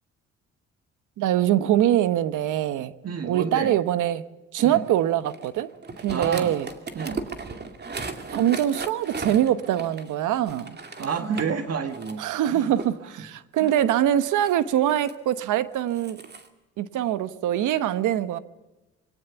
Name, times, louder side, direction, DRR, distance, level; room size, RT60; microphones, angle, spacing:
voice 1, 1.2-2.9 3.2-4.2 4.5-5.7 6.0-6.7 8.3-10.8 12.2-16.2 16.8-18.4, right 11 dB, 85° right, 1.1 m, -23 dB
voice 2, 3.0-3.7 4.6-4.8 6.1-6.6 6.9-7.2 11.0-12.7 13.0-13.3 13.6-13.7, right 6 dB, 55° right, 1.7 m, -30 dB
sound 1, 4.7-11.6 11.9-12.9 13.6-15.1 15.8-16.5, right 4 dB, 35° right, 2.3 m, -37 dB
23.5 x 17.5 x 7.0 m
cardioid pair, 90°, 30 cm